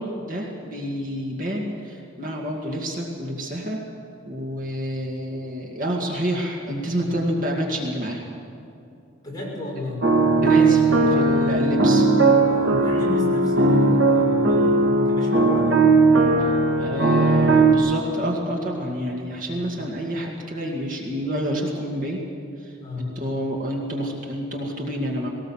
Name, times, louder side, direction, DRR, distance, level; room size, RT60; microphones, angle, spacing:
voice 1, 0.0-3.8 4.3-8.3 10.4-12.1 16.4-22.2 22.6-25.3, equal, 40° right, -1 dB, 2.1 m, -28 dB
voice 2, 9.2-10.0 12.5-15.8 19.5-19.7 22.8-23.1, left 2 dB, 20° left, -5 dB, 6.6 m, -32 dB
sound 1, 10.0-17.7, right 3 dB, 60° right, 1.9 m, -18 dB
20.0 x 18.5 x 7.3 m, 2.6 s
head